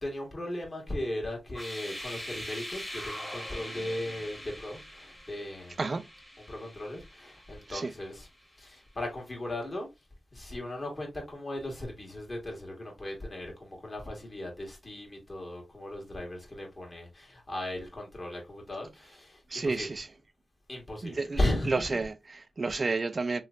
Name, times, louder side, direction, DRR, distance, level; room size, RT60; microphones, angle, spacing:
voice 1, 0.0-5.8 6.5-8.3 8.6-9.9 10.3-19.9 20.7-22.0, left 1 dB, 35° left, 1.6 m, -37 dB
sound 1, 1.5-8.3, equal, 10° left, 1.3 m, -43 dB
voice 2, 19.5-20.1 21.0-21.4 21.7-23.4, right 3 dB, 40° right, 0.5 m, -31 dB
3.1 x 3.0 x 2.4 m
cardioid pair, 70°, 0 cm